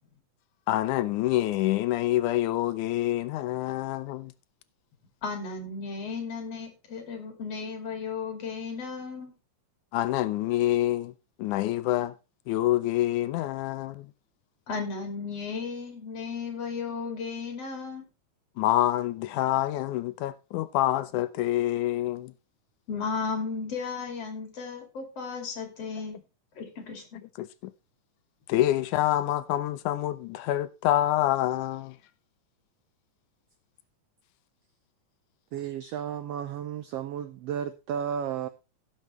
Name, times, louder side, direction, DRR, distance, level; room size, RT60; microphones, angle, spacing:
voice 1, 0.7-4.3 9.9-11.1 11.4-12.1 12.5-14.1 18.6-22.3 27.4-27.7 28.5-32.0, left 14 dB, 80° left, 2.1 m, -26 dB
voice 2, 5.2-9.3 14.7-18.1 22.9-26.2 26.6-27.2, left 5 dB, 50° left, 3.4 m, -35 dB
voice 3, 35.5-38.5, right 8 dB, 85° right, 1.4 m, -33 dB
17.0 x 6.7 x 3.1 m
omnidirectional pair, 3.5 m